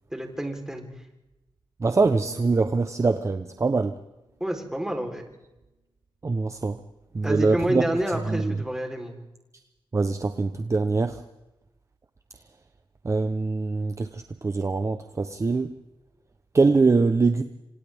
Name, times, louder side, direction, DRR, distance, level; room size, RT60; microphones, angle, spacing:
voice 1, 0.1-0.9 4.4-5.2 7.2-9.2, right 1 dB, 5° right, 2 dB, 3.9 m, -29 dB
voice 2, 1.8-4.0 6.2-6.8 7.1-7.9 8.3-8.5 9.9-11.2 13.0-15.7 16.5-17.4, right 3 dB, 30° right, 8 dB, 0.9 m, -23 dB
sound 1, 2.1-6.0 6.5-6.8, right 2 dB, 50° right, 6.4 m, -53 dB
28.0 x 26.5 x 3.6 m, 0.97 s
wide cardioid pair, 125°, 9 cm